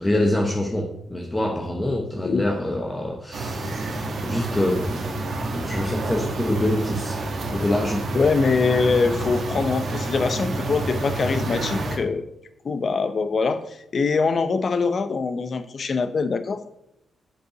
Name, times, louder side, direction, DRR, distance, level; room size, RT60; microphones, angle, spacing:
voice 1, 0.0-5.1 5.5-7.2 7.5-8.1, left 1 dB, 15° left, 0 dB, 0.9 m, -25 dB
voice 2, 2.2-2.5 8.1-12.3 12.6-16.6, left 4 dB, 45° left, 11 dB, 0.7 m, -23 dB
sound 1, 3.3-12.0, right 2 dB, 55° right, 1.4 m, -29 dB
7.5 x 5.5 x 5.1 m, 0.80 s
cardioid pair, 110°, 0 cm